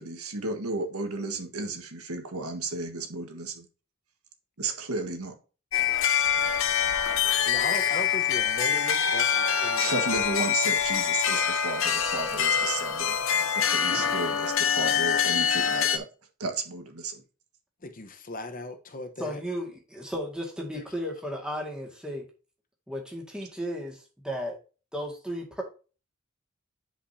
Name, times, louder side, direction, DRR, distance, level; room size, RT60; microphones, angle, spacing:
voice 1, 0.0-3.6 4.6-5.3 9.8-16.0 16.4-17.2, right 3 dB, 85° right, 1.6 m, -33 dB
sound 1, 5.7-16.0, left 8 dB, 65° left, 0.8 m, -25 dB
voice 2, 7.5-10.1 17.8-19.4 20.7-20.8, left 2 dB, 40° left, 1.0 m, -37 dB
voice 3, 19.2-22.2 22.9-24.6 24.9-25.6, equal, 5° right, 2.0 m, -34 dB
9.9 x 5.2 x 2.8 m
head